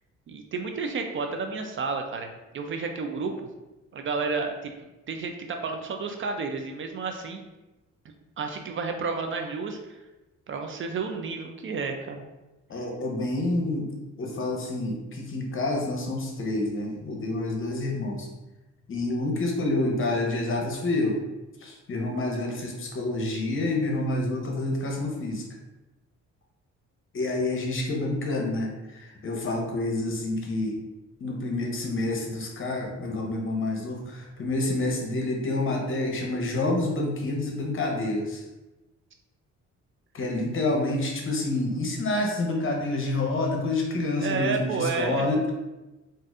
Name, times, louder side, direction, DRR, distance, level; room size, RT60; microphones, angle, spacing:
voice 1, 0.3-3.3 3.9-4.7 5.1-7.4 8.4-10.0 10.5-12.2 44.2-45.3, right 4 dB, 45° right, 4 dB, 0.4 m, -31 dB
voice 2, 12.7-13.9 14.2-18.3 18.9-21.1 21.6-25.4 27.1-30.8 31.2-38.4 40.1-45.5, left 2 dB, 45° left, 1 dB, 0.8 m, -28 dB
4.0 x 2.5 x 2.4 m, 1.1 s
cardioid pair, 90°, 30 cm